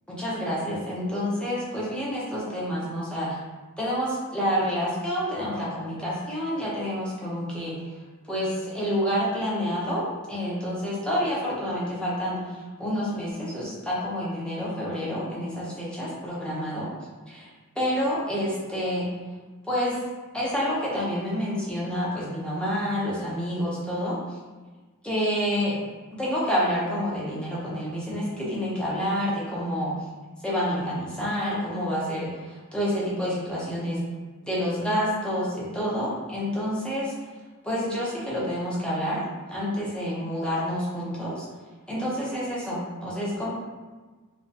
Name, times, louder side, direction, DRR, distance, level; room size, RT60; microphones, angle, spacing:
voice 1, 0.1-3.4 3.8-7.8 8.3-16.9 17.3-17.5 17.8-19.1 19.6-20.0 20.3-24.2 25.0-25.8 26.1-30.0 30.4-34.0 34.4-37.1 37.6-41.5 41.9-43.5, equal, 5° left, -7 dB, 0.6 m, -28 dB
2.3 x 2.2 x 2.6 m, 1.3 s
head